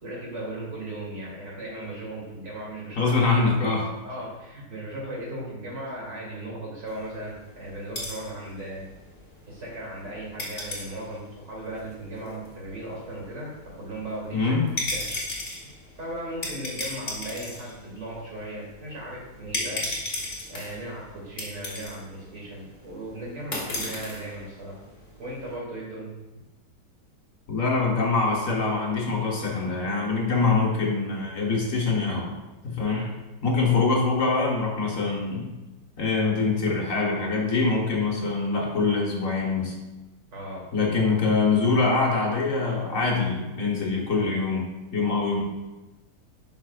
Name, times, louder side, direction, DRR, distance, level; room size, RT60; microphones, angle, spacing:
voice 1, 0.0-3.2 4.0-8.9 9.5-14.5 14.9-15.1 16.0-19.9 20.5-24.8 25.2-26.1 32.8-33.1 40.3-40.7, right 1 dB, 85° right, -4 dB, 3.2 m, -37 dB
voice 2, 3.0-3.9 14.3-14.6 27.5-32.3 32.6-33.0 33.4-35.5 36.0-39.7 40.7-44.6 44.9-45.4, left 4 dB, 50° left, -2 dB, 1.6 m, -24 dB
sound 1, 6.9-25.6, left 2 dB, 35° left, 1.8 m, -37 dB
11.5 x 5.3 x 2.5 m, 1.1 s
omnidirectional pair, 1.8 m